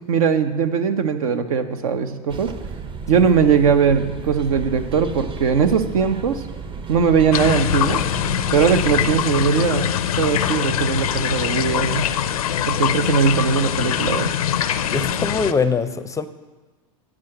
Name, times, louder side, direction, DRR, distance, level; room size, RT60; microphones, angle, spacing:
voice 1, 0.1-2.5 3.1-6.4 6.9-8.0 8.5-9.9 10.2-12.1 12.7-14.3, right 6 dB, 75° right, 9 dB, 0.8 m, -20 dB
sound 1, 2.3-9.3, right 5 dB, 30° right, 0.7 m, -33 dB
sound 2, 7.3-15.5, left 9 dB, 85° left, 0.5 m, -23 dB
voice 2, 14.9-16.3, left 5 dB, 15° left, 12 dB, 0.5 m, -22 dB
9.7 x 4.9 x 7.7 m, 1.3 s
hypercardioid pair, 95°, 18 cm